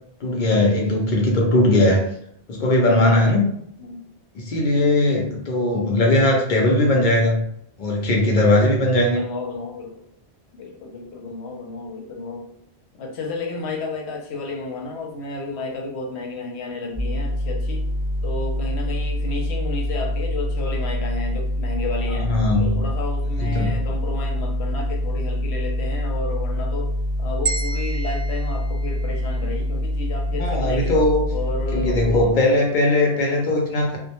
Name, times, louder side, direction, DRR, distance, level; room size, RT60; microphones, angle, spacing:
voice 1, 0.2-2.1 2.5-3.5 4.3-7.4 7.8-9.2 22.1-22.9 23.4-23.8 30.3-31.2 31.7-34.0, left 1 dB, 55° left, 0 dB, 0.6 m, -19 dB
voice 2, 8.9-10.0 10.5-12.4 12.9-17.9 18.2-22.3 22.6-26.9 27.2-31.0 31.3-32.3, left 3 dB, 85° left, 1 dB, 0.9 m, -32 dB
sound 1, 16.9-32.3, left 1 dB, 10° right, 1.0 m, -25 dB
sound 2, 27.5-29.6, right 4 dB, 65° right, 0.7 m, -32 dB
2.1 x 2.1 x 2.8 m, 0.69 s
omnidirectional pair, 1.1 m